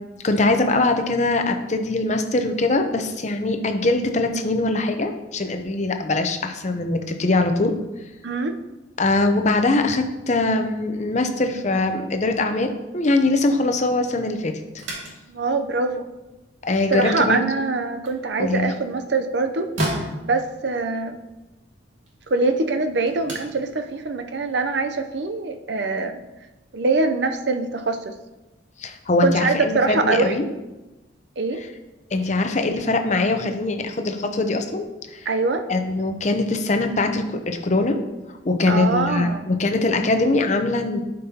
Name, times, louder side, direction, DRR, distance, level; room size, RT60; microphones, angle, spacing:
voice 1, 0.2-7.7 9.0-14.5 16.6-17.4 18.4-18.7 28.8-30.5 32.1-34.9 35.1-35.3 35.7-38.0 38.4-41.0, left 2 dB, 35° left, 6 dB, 0.7 m, -22 dB
voice 2, 8.2-8.6 15.3-16.1 16.9-21.2 22.3-26.2 26.7-28.1 29.2-30.3 31.4-31.6 35.3-35.6 38.7-39.5, right 3 dB, 60° right, 7 dB, 0.6 m, -23 dB
sound 1, 14.7-25.2, right 1 dB, 75° right, 2.2 m, -37 dB
11.5 x 5.3 x 2.8 m, 1.1 s
head